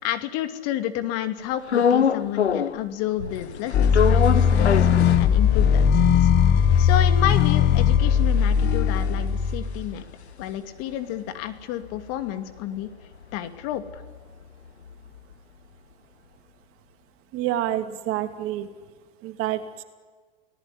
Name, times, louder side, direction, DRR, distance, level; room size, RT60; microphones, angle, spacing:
voice 1, 0.0-4.9 5.2-6.3 6.8-10.0 10.4-12.9 13.3-14.0, left 11 dB, 50° left, 9 dB, 2.5 m, -30 dB
sound 1, 1.7-2.9 3.2-5.8 6.2-6.3 6.4-10.9 11.3-15.3, left 7 dB, 85° left, 1.3 m, -27 dB
sound 2, 3.7-10.0, left 7 dB, 30° left, 1.4 m, -19 dB
voice 2, 17.3-18.7 19.2-19.8, right 12 dB, 45° right, 8 dB, 2.9 m, -28 dB
30.0 x 18.5 x 9.9 m, 1.5 s
hypercardioid pair, 100°, 32 cm